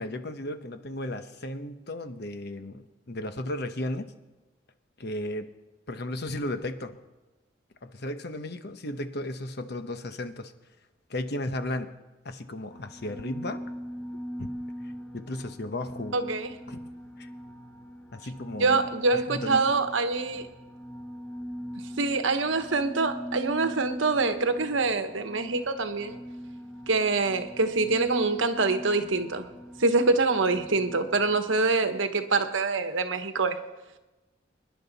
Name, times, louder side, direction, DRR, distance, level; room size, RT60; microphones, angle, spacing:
voice 1, 0.0-4.1 5.0-5.5 5.9-7.0 7.8-10.5 11.1-11.9 12.2-13.6 14.4-14.5 15.1-16.2 16.7-16.8 17.2-17.3 18.1-18.9 19.3-19.6, left 1 dB, 55° left, 1.0 m, -34 dB
sound 1, 12.7-31.4, equal, 5° left, 1.3 m, -41 dB
voice 2, 16.1-16.5 18.6-20.5 22.0-26.2 26.9-29.5 29.8-33.6, right 3 dB, 85° right, 1.1 m, -25 dB
25.5 x 10.5 x 4.1 m
head